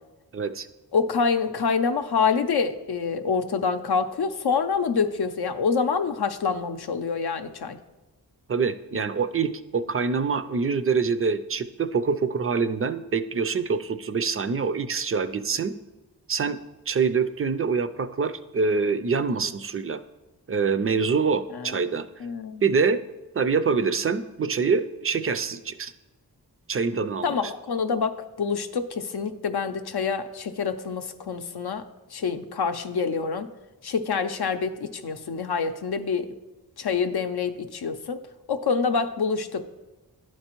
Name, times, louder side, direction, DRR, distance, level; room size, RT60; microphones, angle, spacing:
voice 1, 0.3-0.7 8.5-15.7 16.3-16.6 16.9-20.0 20.5-22.1 22.6-23.0 23.3-25.9 26.7-27.4, right 5 dB, 35° right, 11 dB, 0.4 m, -25 dB
voice 2, 0.9-7.8 21.5-21.8 22.2-22.6 27.2-28.1 28.4-33.5 33.8-36.3 36.8-39.6, left 5 dB, 70° left, 8 dB, 0.5 m, -26 dB
11.0 x 4.5 x 3.0 m, 1.1 s
wide cardioid pair, 55°, 40 cm